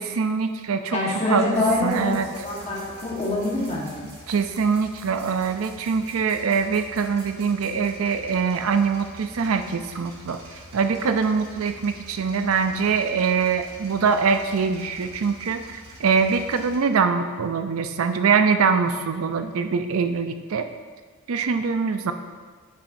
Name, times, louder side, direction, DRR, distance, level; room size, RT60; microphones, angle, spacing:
voice 1, 0.0-1.0 1.3-1.5 1.8-2.3 4.3-10.4 10.7-20.7 21.3-22.1, right 5 dB, 85° right, 8 dB, 0.5 m, -23 dB
voice 2, 0.9-4.0, left 2 dB, 30° left, -4 dB, 1.5 m, -25 dB
sound 1, 1.5-16.8, equal, 55° right, 1.6 m, -46 dB
9.2 x 6.7 x 2.7 m, 1.5 s
head